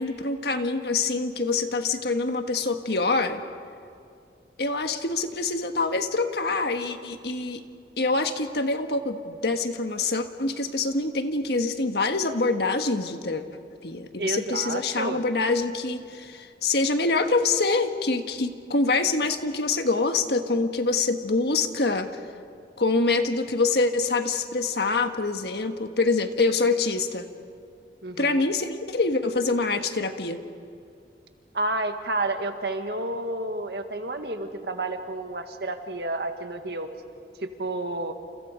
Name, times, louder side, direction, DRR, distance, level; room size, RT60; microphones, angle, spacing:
voice 1, 0.0-3.4 4.6-7.6 8.0-13.4 13.8-22.2 22.8-27.3 28.2-30.4, left 3 dB, 65° left, 7 dB, 1.5 m, -25 dB
voice 2, 14.2-15.2 28.0-28.4 31.5-36.9 37.6-38.1, right 2 dB, 65° right, 6 dB, 1.8 m, -30 dB
29.5 x 28.5 x 5.1 m, 2.5 s
head